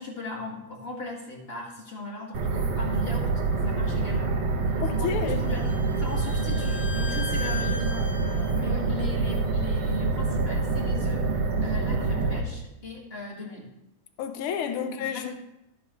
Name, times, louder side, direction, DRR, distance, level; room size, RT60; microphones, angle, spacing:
voice 1, 0.0-4.4 4.7-7.9 8.3-13.7 15.0-15.4, left 2 dB, 30° left, 1.4 m, -39 dB
sound 1, 2.3-12.4, right 3 dB, 60° right, 2.1 m, -26 dB
voice 2, 4.8-5.5 14.2-15.4, left 8 dB, 80° left, 1.2 m, -30 dB
Bowed string instrument, 4.8-8.6, left 3 dB, 50° left, 2.3 m, -39 dB
14.0 x 9.4 x 3.1 m
omnidirectional pair, 3.3 m